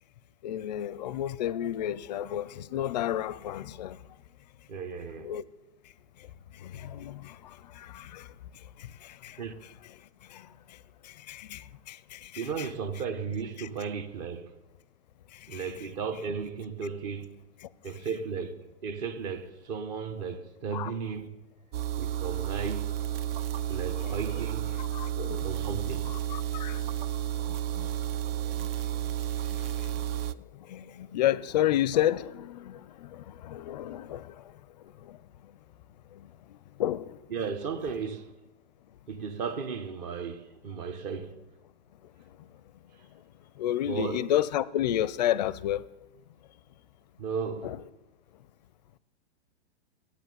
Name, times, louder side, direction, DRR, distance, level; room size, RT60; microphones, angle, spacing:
voice 1, 0.4-4.0 5.2-5.4 6.6-8.3 9.2-9.4 10.3-10.5 11.3-12.7 13.6-13.7 15.5-15.7 20.7-20.9 24.0-24.2 24.8-25.7 26.1-26.8 27.5-27.9 30.7-34.3 36.8-37.1 43.6-45.8 47.6-47.8, left 12 dB, 40° left, 0.4 m, -31 dB
voice 2, 4.7-5.3 9.4-9.5 12.4-14.5 15.5-17.3 17.8-21.4 22.0-22.9 23.7-24.7 25.4-26.1 37.3-38.3 39.1-41.3 43.8-44.2 47.2-47.7, right 6 dB, 40° right, 1.1 m, -35 dB
sound 1, 21.7-30.3, right 11 dB, 55° right, 0.5 m, -32 dB
13.5 x 8.4 x 9.4 m
hypercardioid pair, 160°, 34 cm